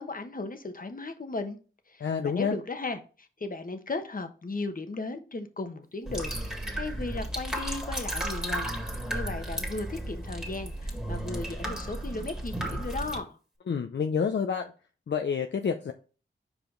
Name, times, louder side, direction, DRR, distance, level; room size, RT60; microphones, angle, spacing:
voice 1, 0.0-1.6 1.9-6.3 6.7-13.4, left 3 dB, 45° left, 1.1 m, -36 dB
voice 2, 2.0-2.6 13.7-14.7 15.1-15.9, left 6 dB, 60° left, 0.6 m, -28 dB
sound 1, 6.0-13.2, right 1 dB, 5° right, 1.8 m, -34 dB
5.1 x 5.0 x 3.8 m
cardioid pair, 45°, 21 cm